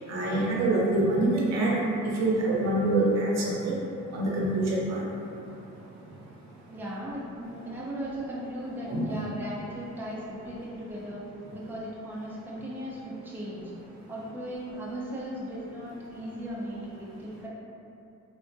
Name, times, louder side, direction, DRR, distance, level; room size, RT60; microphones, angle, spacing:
voice 1, 0.0-5.2 5.4-6.7 8.9-9.1 14.0-14.1, right 2 dB, 60° right, -4 dB, 0.7 m, -27 dB
voice 2, 6.7-11.2 11.5-13.7 14.1-17.5, equal, 5° right, -8 dB, 0.6 m, -37 dB
3.6 x 2.1 x 2.5 m, 2.7 s
cardioid pair, 90°, 30 cm